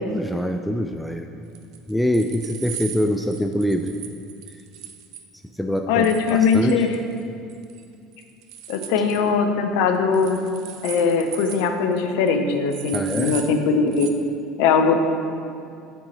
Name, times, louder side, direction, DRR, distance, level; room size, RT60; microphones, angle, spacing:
voice 1, 0.0-1.4 1.9-3.9 5.6-6.9 12.9-13.4, equal, 5° left, 5 dB, 0.3 m, -24 dB
sound 1, 1.6-5.2 6.0-7.2 7.5-7.8 8.1-9.2 10.1-11.7 12.0-12.1 12.3-12.4 12.7-13.5 13.9-14.1, right 9 dB, 55° right, 0.5 m, -37 dB
voice 2, 5.9-7.0 8.7-10.5 10.8-14.1 14.6-15.0, left 5 dB, 60° left, 6 dB, 0.6 m, -20 dB
8.3 x 4.6 x 4.4 m, 2.4 s
figure-of-eight pair, 65°, 0 cm